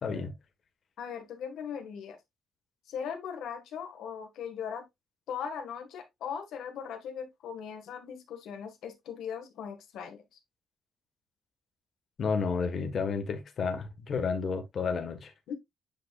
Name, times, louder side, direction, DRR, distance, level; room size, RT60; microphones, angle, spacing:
voice 1, 0.0-0.3 12.2-15.3, left 5 dB, 40° left, 1.4 m, -31 dB
voice 2, 1.0-2.2 2.9-4.8 5.3-10.2 15.5-15.6, left 7 dB, 80° left, 1.6 m, -39 dB
9.2 x 5.1 x 2.4 m
cardioid pair, 180°, 0 cm